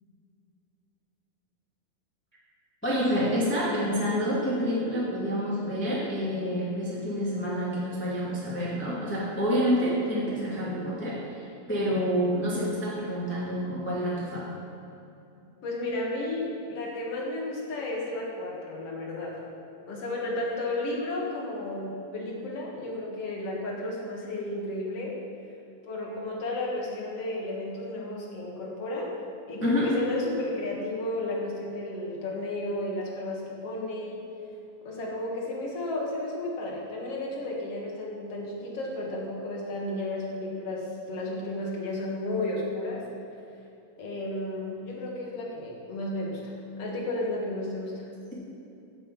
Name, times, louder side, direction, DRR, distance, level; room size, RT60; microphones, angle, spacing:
voice 1, 2.8-14.4 29.6-29.9, equal, 5° left, -7 dB, 1.5 m, -28 dB
voice 2, 15.6-19.5 19.9-25.2 25.9-29.2 29.5-34.2 34.8-43.1 44.0-48.1, left 2 dB, 50° left, -3 dB, 2.5 m, -33 dB
15.0 x 6.8 x 5.5 m, 2.7 s
omnidirectional pair, 4.2 m